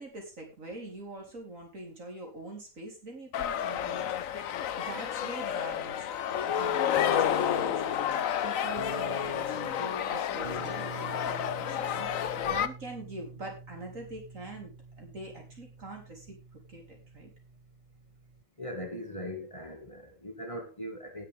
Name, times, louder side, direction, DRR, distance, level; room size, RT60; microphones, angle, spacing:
voice 1, 0.0-4.1 4.8-8.0 8.4-14.7 15.0-17.3, right 2 dB, 75° right, 4.3 m, -44 dB
sound 1, 3.3-12.7, left 10 dB, 85° left, 1.2 m, -30 dB
sound 2, 7.0-18.4, right 4 dB, 40° right, 1.1 m, -46 dB
voice 2, 18.6-21.3, equal, 25° left, 2.2 m, -40 dB
18.5 x 7.2 x 3.6 m
omnidirectional pair, 1.4 m